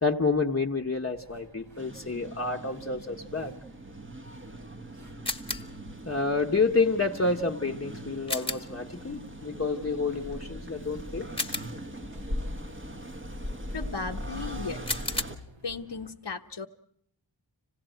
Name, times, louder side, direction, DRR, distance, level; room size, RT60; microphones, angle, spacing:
voice 1, 0.0-3.5 6.0-11.3, left 3 dB, 30° left, 1 dB, 1.0 m, -29 dB
sound 1, 1.1-16.1, right 1 dB, 75° right, 3.1 m, -54 dB
sound 2, 1.8-15.4, equal, 25° right, 1.3 m, -40 dB
sound 3, 5.2-5.8 8.3-8.8 11.4-12.0 14.9-15.2, left 2 dB, 10° left, 1.2 m, -33 dB
voice 2, 13.7-15.0 15.6-16.7, left 4 dB, 60° left, 6 dB, 1.0 m, -36 dB
26.0 x 17.5 x 9.0 m, 0.69 s
wide cardioid pair, 75°, 47 cm